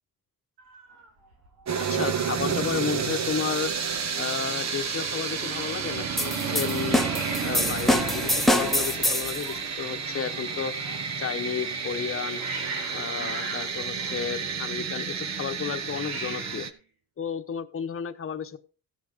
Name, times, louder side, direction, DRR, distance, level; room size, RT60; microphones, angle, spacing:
Hiss, 0.6-1.9 2.2-2.6 2.9-3.0 3.2-3.9 6.9-11.2 11.9-14.9 15.8-16.8, right 3 dB, 80° right, 3.3 m, -41 dB
sound 1, 1.7-16.7, right 6 dB, 50° right, 1.1 m, -31 dB
voice 1, 1.9-3.7 4.1-7.0 7.4-10.7 11.2-12.4 12.9-16.7 17.2-18.6, left 7 dB, 35° left, 7 dB, 1.1 m, -32 dB
sound 2, 6.2-9.4, left 1 dB, ahead, 0.9 m, -25 dB
15.5 x 6.0 x 5.1 m, 0.36 s
cardioid pair, 135°, 37 cm